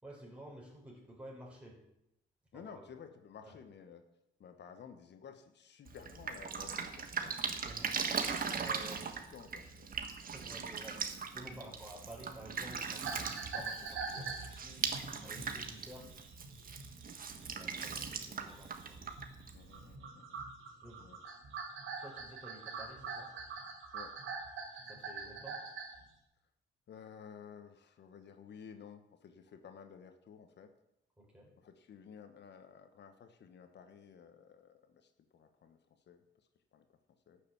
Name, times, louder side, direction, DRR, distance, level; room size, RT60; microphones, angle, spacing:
voice 1, 0.0-1.8 2.5-2.9 3.4-3.5 7.6-8.0 8.5-9.1 10.3-11.0 11.3-14.9 15.2-16.1 17.3-19.0 20.8-21.1 22.0-23.3 24.7-25.6 31.2-31.5, right 1 dB, 5° right, -3 dB, 5.1 m, -52 dB
voice 2, 2.5-4.0 4.4-10.2 10.5-10.8 11.6-11.7 19.5-20.4 20.7-21.2 23.9-24.2 26.9-30.7 31.6-37.0 37.3-37.4, left 7 dB, 60° left, 7 dB, 1.3 m, -54 dB
Drip, 5.9-19.9, right 6 dB, 45° right, 1.5 m, -40 dB
sound 1, 13.0-19.5 19.7-26.0, right 4 dB, 80° right, 3.3 m, -44 dB
12.5 x 6.8 x 8.7 m, 0.84 s
cardioid pair, 90°, 20 cm